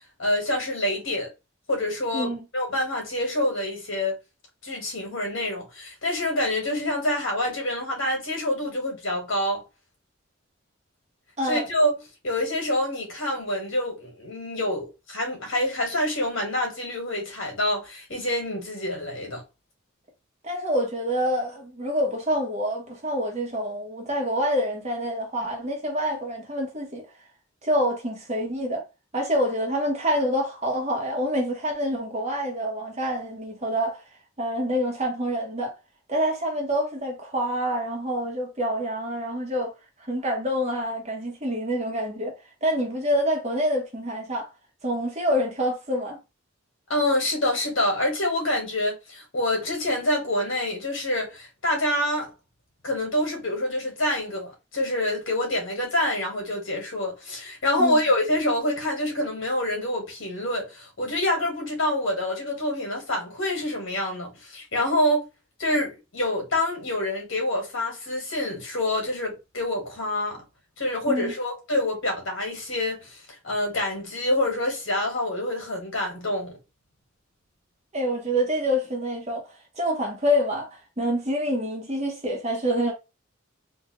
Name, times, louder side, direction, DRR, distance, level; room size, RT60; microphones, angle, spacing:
voice 1, 0.2-1.3 1.7-4.2 4.6-9.6 11.4-11.9 12.2-19.4 46.9-52.3 52.8-65.2 65.6-70.4 70.8-76.6, left 1 dB, 75° left, 1.9 m, -26 dB
voice 2, 2.1-2.4 11.4-11.6 20.4-27.0 27.6-28.8 29.1-34.0 34.4-35.7 36.1-39.7 40.1-42.3 42.6-44.5 44.8-46.2 57.8-58.0 71.0-71.3 77.9-79.4 79.8-80.7 81.0-82.9, equal, 35° right, 1.3 m, -26 dB
3.6 x 2.7 x 3.1 m
head